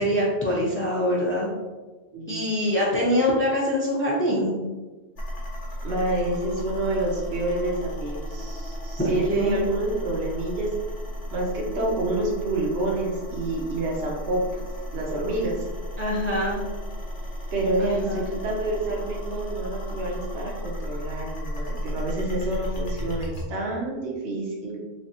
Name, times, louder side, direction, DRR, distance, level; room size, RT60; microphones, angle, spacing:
voice 1, 0.0-1.5 2.3-4.6 9.0-9.6 16.0-16.6 17.8-18.2, equal, 15° left, -5 dB, 0.6 m, -24 dB
sound 1, 5.2-23.4, equal, 50° left, 0.9 m, -34 dB
voice 2, 5.8-10.7 11.3-14.6 14.9-15.6 17.5-24.8, right 2 dB, 70° right, -2 dB, 1.0 m, -28 dB
3.4 x 3.2 x 2.8 m, 1.3 s
omnidirectional pair, 1.1 m